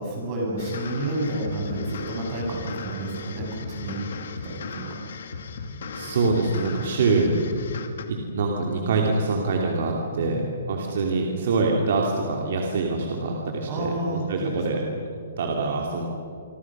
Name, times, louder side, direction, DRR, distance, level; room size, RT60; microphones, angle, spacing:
voice 1, 0.0-5.0 7.0-7.5 10.1-10.4 13.7-14.8, right 1 dB, 25° right, -1 dB, 6.8 m, -30 dB
sound 1, 0.6-8.1, left 5 dB, 55° left, 2.3 m, -37 dB
voice 2, 5.9-7.3 8.1-10.4 10.7-14.8 15.4-16.1, right 3 dB, 45° right, 0 dB, 2.9 m, -25 dB
27.0 x 25.0 x 6.2 m, 2.4 s
hypercardioid pair, 180°, 0 cm